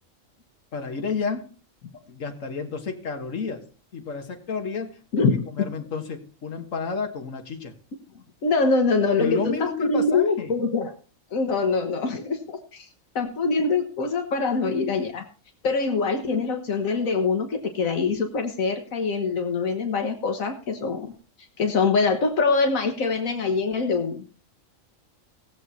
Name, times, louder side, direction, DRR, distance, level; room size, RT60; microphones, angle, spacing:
voice 1, 0.7-1.5 2.1-3.7 3.9-7.7 9.2-10.6, left 5 dB, 70° left, 4 dB, 1.9 m, -31 dB
voice 2, 5.1-5.5 8.4-10.9 11.3-12.9 13.2-15.2 15.6-21.1 21.6-24.2, left 4 dB, 85° left, 4 dB, 1.7 m, -24 dB
17.5 x 7.6 x 4.2 m, 0.38 s
omnidirectional pair, 1.4 m